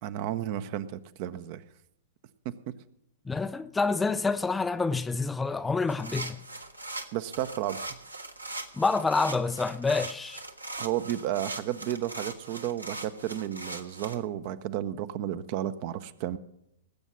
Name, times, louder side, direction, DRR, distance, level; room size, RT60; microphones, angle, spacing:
voice 1, 0.0-1.6 2.4-2.7 7.1-7.9 10.8-16.4, right 12 dB, 40° right, 0.8 m, -32 dB
voice 2, 3.3-6.4 8.8-10.4, left 4 dB, 10° left, 0.5 m, -27 dB
sound 1, 5.9-14.2, right 2 dB, 85° right, 1.4 m, -40 dB
19.0 x 8.2 x 6.1 m
figure-of-eight pair, 110°, 0 cm